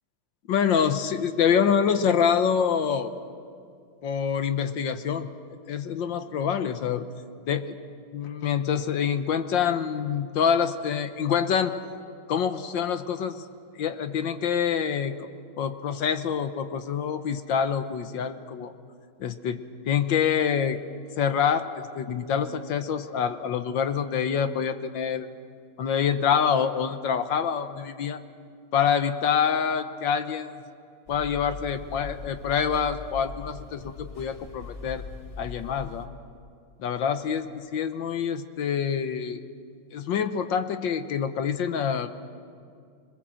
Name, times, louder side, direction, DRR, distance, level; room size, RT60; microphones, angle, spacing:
voice 1, 0.5-3.1 4.0-5.3 5.7-7.1 7.5-7.7 8.1-11.7 12.3-13.4 13.8-15.3 15.6-18.7 19.2-20.8 21.2-25.3 25.8-28.2 28.7-30.6 31.1-35.0 35.4-36.1 36.8-39.4 39.9-42.1, left 7 dB, 65° left, 9 dB, 1.5 m, -26 dB
sound 1, 31.1-36.1, left 4 dB, 20° left, 1.4 m, -41 dB
26.0 x 21.0 x 7.7 m, 2.3 s
omnidirectional pair, 2.4 m